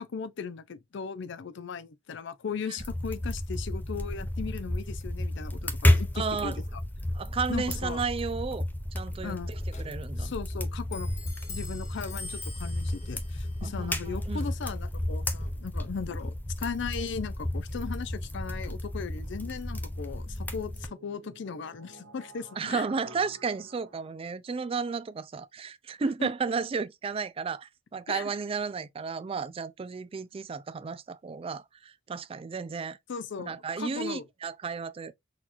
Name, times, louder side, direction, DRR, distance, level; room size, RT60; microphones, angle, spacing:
voice 1, 0.0-6.8 7.5-8.0 9.2-9.5 10.2-11.1 11.5-22.9 26.2-26.3 28.1-28.2 33.1-34.2, left 5 dB, 65° left, 0.5 m, -37 dB
sound 1, 2.8-20.9, left 1 dB, 10° left, 0.6 m, -32 dB
voice 2, 6.2-6.6 7.1-10.3 13.6-14.5 22.6-33.0 33.4-35.1, right 5 dB, 30° right, 0.3 m, -33 dB
Clock, 9.1-18.4, left 4 dB, 40° left, 0.8 m, -48 dB
sound 2, 19.1-24.1, right 2 dB, 65° right, 0.9 m, -53 dB
4.1 x 2.9 x 2.5 m
head